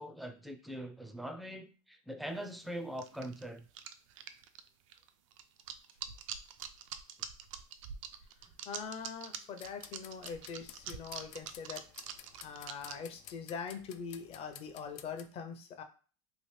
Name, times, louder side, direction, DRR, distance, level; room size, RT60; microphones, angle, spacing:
voice 1, 0.0-3.7, equal, ahead, 7 dB, 0.4 m, -42 dB
sound 1, 3.0-12.9, right 8 dB, 85° right, 0.4 m, -44 dB
voice 2, 8.7-11.8 12.4-15.8, left 6 dB, 40° left, 6 dB, 0.7 m, -43 dB
sound 2, 9.6-15.3, left 11 dB, 75° left, 0.4 m, -54 dB
3.0 x 2.5 x 3.2 m, 0.37 s
supercardioid pair, 120°, 16 cm